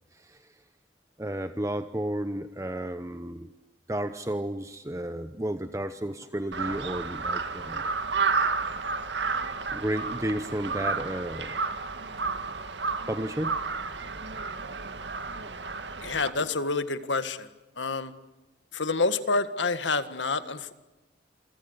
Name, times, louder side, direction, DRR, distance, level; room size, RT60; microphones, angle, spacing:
voice 1, 0.1-0.5 1.2-3.5 3.9-7.9 9.7-11.6 13.1-13.7, right 1 dB, 15° right, 10 dB, 0.9 m, -32 dB
Crow, 6.5-16.3, right 4 dB, 75° right, 2.0 m, -31 dB
voice 2, 16.0-17.5 17.8-18.1 18.7-20.7, left 3 dB, 85° left, 11 dB, 1.8 m, -28 dB
28.5 x 24.5 x 8.2 m, 1.0 s
head